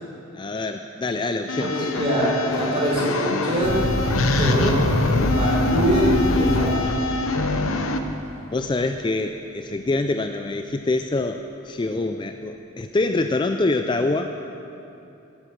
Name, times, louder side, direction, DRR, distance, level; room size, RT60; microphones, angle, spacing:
voice 1, 0.3-1.7 8.5-14.3, left 2 dB, 20° left, 7 dB, 0.3 m, -25 dB
sound 1, 1.5-8.0, left 2 dB, 75° left, 1.0 m, -24 dB
voice 2, 1.6-3.8 4.4-6.9, equal, 25° right, -6 dB, 4.4 m, -24 dB
sound 2, 3.6-7.4, equal, 45° right, 4.1 m, -25 dB
15.5 x 8.9 x 7.8 m, 2.9 s
head